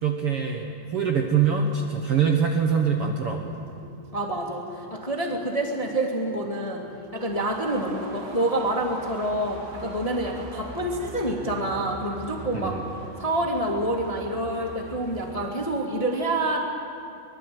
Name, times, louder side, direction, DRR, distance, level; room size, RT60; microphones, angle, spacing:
voice 1, 0.0-3.7 12.5-12.8, right 6 dB, 55° right, 2 dB, 1.7 m, -24 dB
sound 1, 1.2-15.5, right 2 dB, 90° right, 4.1 m, -45 dB
voice 2, 4.1-6.8 7.1-12.8 13.2-16.6, right 1 dB, 15° left, 0 dB, 1.5 m, -27 dB
sound 2, 7.3-15.9, right 2 dB, 40° right, 2.6 m, -45 dB
24.0 x 20.5 x 7.9 m, 2.5 s
omnidirectional pair, 3.9 m